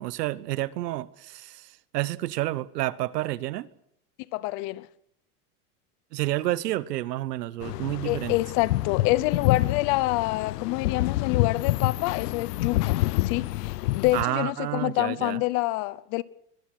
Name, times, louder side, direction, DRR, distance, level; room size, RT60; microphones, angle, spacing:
voice 1, 0.0-3.7 6.1-8.3 14.1-15.4, right 16 dB, 85° right, 1.3 m, -30 dB
voice 2, 4.3-4.9 8.0-13.0 13.2-16.2, left 19 dB, 40° left, 0.8 m, -27 dB
sound 1, 7.6-14.2, left 17 dB, 80° left, 0.8 m, -27 dB
24.0 x 20.5 x 6.5 m
supercardioid pair, 155°, 47 cm